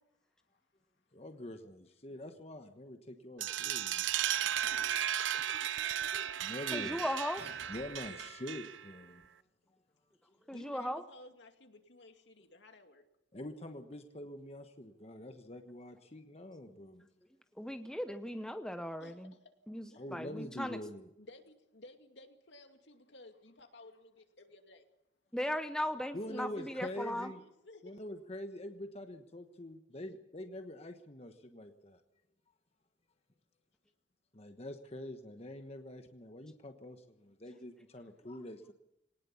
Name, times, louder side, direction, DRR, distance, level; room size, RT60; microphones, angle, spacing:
voice 1, 1.1-4.1 6.4-7.0 7.7-9.3 13.3-17.0 20.0-21.1 26.1-27.4 27.8-32.0 34.3-38.7, left 1 dB, 35° left, 6 dB, 1.2 m, -45 dB
sound 1, 3.4-8.9, right 10 dB, 80° right, 0.7 m, -35 dB
voice 2, 4.6-5.7 6.2-6.5 10.5-13.0 19.0-19.5 19.9-20.1 21.2-24.8 26.3-26.9 27.2-28.0 29.9-30.0, left 2 dB, 70° left, 5 dB, 2.5 m, -56 dB
voice 3, 6.7-7.5 10.5-11.0 17.6-19.3 19.7-20.8 25.3-27.3, equal, 5° left, 8 dB, 0.8 m, -37 dB
sound 2, 7.4-8.4, right 2 dB, 60° right, 3.7 m, -56 dB
21.5 x 19.0 x 7.1 m, 0.82 s
head